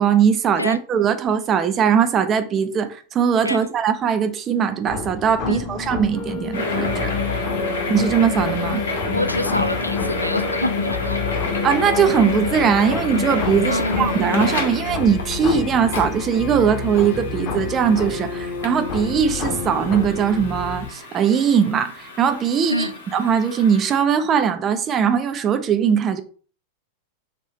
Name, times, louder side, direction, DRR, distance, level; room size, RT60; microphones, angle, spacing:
voice 1, 0.0-7.1 7.9-8.8 11.6-26.2, right 7 dB, 30° right, 0.4 m, -20 dB
sound 1, 4.9-20.9, left 5 dB, 35° left, 0.8 m, -30 dB
sound 2, 6.5-24.0, left 3 dB, 65° left, 0.9 m, -28 dB
voice 2, 9.1-11.2 13.6-14.2 22.7-22.9, left 1 dB, 85° left, 0.3 m, -25 dB
2.9 x 2.6 x 3.2 m
figure-of-eight pair, 90°, 0 cm